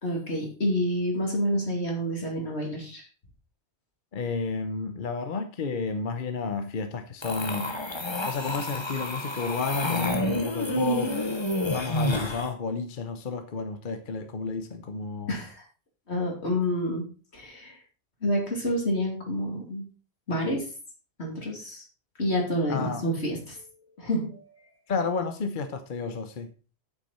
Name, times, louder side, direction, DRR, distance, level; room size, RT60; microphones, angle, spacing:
voice 1, 0.0-3.1 15.3-15.6 16.1-17.0 17.3-17.8 18.2-19.8 20.3-20.7 21.2-21.8 22.2-23.6 24.0-24.4, equal, 80° left, 3.2 m, -28 dB
voice 2, 4.1-7.7 8.3-11.2 11.7-15.3 22.7-23.0 24.9-26.5, left 4 dB, 55° left, 0.9 m, -31 dB
sound 1, 7.2-12.5, left 1 dB, 25° left, 1.2 m, -29 dB
8.5 x 8.4 x 4.2 m
omnidirectional pair, 1.1 m